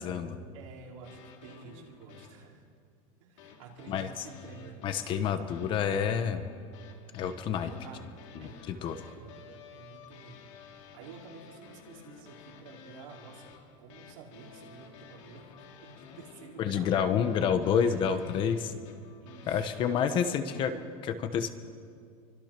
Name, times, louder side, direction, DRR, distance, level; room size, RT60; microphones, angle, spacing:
voice 1, 0.0-0.4 3.9-4.3 4.8-6.5 7.1-7.7 8.3-9.0 16.6-18.7 19.5-20.7 21.0-21.5, left 7 dB, 30° left, 9 dB, 1.2 m, -29 dB
voice 2, 0.5-2.6 3.2-4.8 7.8-8.0 8.4-10.4 10.7-16.9 17.8-18.3 19.2-19.6 20.0-20.9, right 5 dB, 75° right, -1 dB, 5.0 m, -50 dB
sound 1, 1.0-2.5 3.4-20.6, left 6 dB, 65° left, 3.8 m, -52 dB
28.0 x 24.5 x 6.1 m, 2.1 s
supercardioid pair, 170°, 17 cm